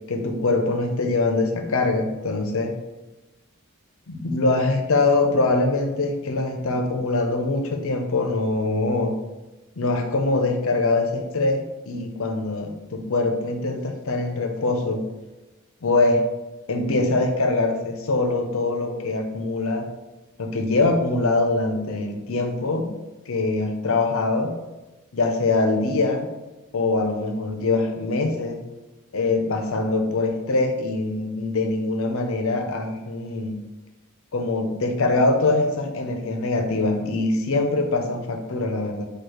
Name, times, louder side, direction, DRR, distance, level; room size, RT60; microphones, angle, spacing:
voice 1, 0.1-2.7 4.1-9.2 9.8-15.0 15.8-16.2 16.7-19.9 20.4-22.9 23.3-24.6 25.1-26.3 26.7-28.6 29.1-33.6 34.3-39.0, left 3 dB, 65° left, 4 dB, 0.7 m, -23 dB
4.7 x 2.4 x 4.8 m, 1.1 s
head